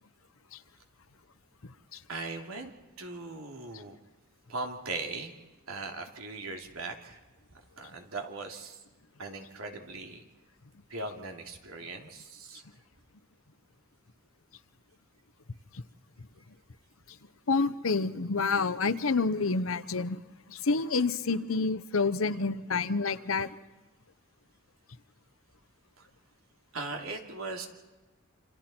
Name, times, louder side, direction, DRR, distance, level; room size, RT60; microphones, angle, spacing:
voice 1, 2.1-2.7 3.0-4.0 4.5-5.3 5.7-7.2 7.8-8.8 9.2-10.2 10.9-12.6 26.0-26.1 26.7-27.7, right 3 dB, 85° right, 3 dB, 3.0 m, -39 dB
voice 2, 17.5-20.2 20.5-23.5, left 4 dB, 75° left, 14 dB, 0.9 m, -28 dB
28.0 x 27.0 x 4.4 m, 1.2 s
head